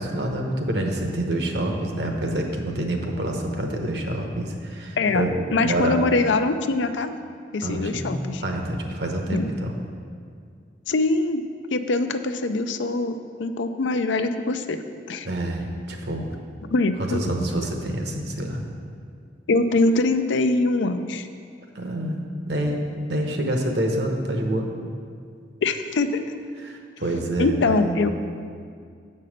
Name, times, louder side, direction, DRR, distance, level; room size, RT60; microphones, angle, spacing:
voice 1, 0.0-6.0 7.6-9.7 15.2-16.3 17.0-18.6 21.7-24.7 26.6-28.0, right 1 dB, 65° right, 2 dB, 1.0 m, -27 dB
voice 2, 5.0-7.2 7.5-8.4 9.3-9.5 10.9-11.4 11.7-14.8 15.1-15.3 16.7-17.2 19.5-21.3 25.6-26.4 27.4-28.1, left 3 dB, 85° left, 9 dB, 0.5 m, -23 dB
7.6 x 5.5 x 6.4 m, 2.2 s
head